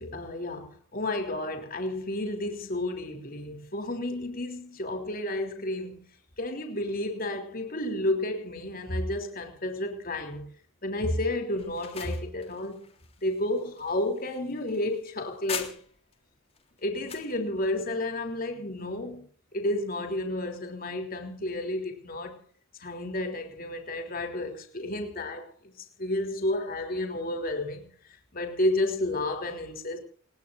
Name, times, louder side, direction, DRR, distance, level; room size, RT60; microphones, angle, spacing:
voice 1, 0.0-6.0 6.4-10.5 10.8-12.8 13.2-15.7 16.8-19.3 19.5-22.4 22.8-25.5 26.0-27.9 28.3-30.0, left 1 dB, 45° left, 3.4 m, -31 dB
sound 1, 11.6-16.1 16.6-17.3, left 7 dB, 30° left, 3.3 m, -41 dB
29.5 x 18.5 x 2.6 m
head